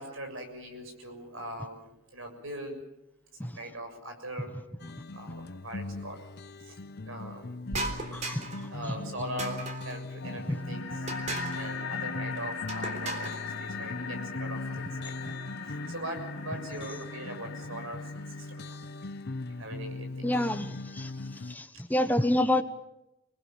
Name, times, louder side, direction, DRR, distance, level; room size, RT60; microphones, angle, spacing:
voice 1, 0.0-1.9 2.1-2.8 3.4-4.5 5.1-6.3 6.7-6.8 7.1-7.5 8.7-11.0 11.5-15.3 15.9-18.0 18.4-18.8 19.6-20.3, right 1 dB, 85° right, 5 dB, 7.1 m, -41 dB
sound 1, 4.8-21.6, left 2 dB, 55° left, 0.8 m, -40 dB
sound 2, 7.7-8.7 9.4-10.0 11.1-11.7 12.7-13.4, right 2 dB, 35° right, 3.8 m, -36 dB
voice 2, 8.1-8.5 10.5-10.6 20.2-21.1 21.5-22.6, left 1 dB, 10° left, 9 dB, 1.1 m, -28 dB
sound 3, 10.2-19.2, left 5 dB, 75° left, 2.6 m, -40 dB
27.0 x 21.0 x 7.6 m, 0.87 s
head